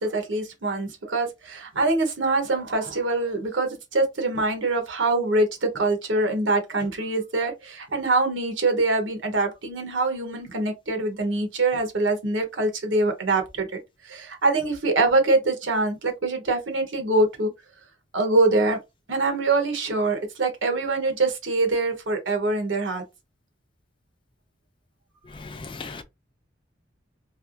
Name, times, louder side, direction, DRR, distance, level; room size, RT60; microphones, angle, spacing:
voice 1, 0.0-17.5 18.1-18.8 19.1-23.0, right 2 dB, 80° right, 1.0 m, -24 dB
voice 2, 25.3-26.0, left 4 dB, 25° left, 0.5 m, -37 dB
3.4 x 2.8 x 2.5 m
head